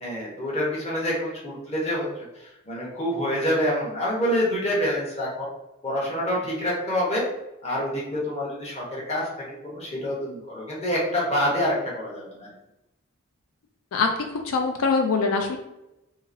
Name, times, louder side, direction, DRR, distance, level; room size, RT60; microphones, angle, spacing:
voice 1, 0.0-5.5 5.8-7.3 7.6-12.5, equal, 30° left, -5 dB, 0.9 m, -27 dB
voice 2, 13.9-15.6, left 4 dB, 80° left, 4 dB, 0.4 m, -23 dB
2.8 x 2.8 x 2.6 m, 0.92 s
head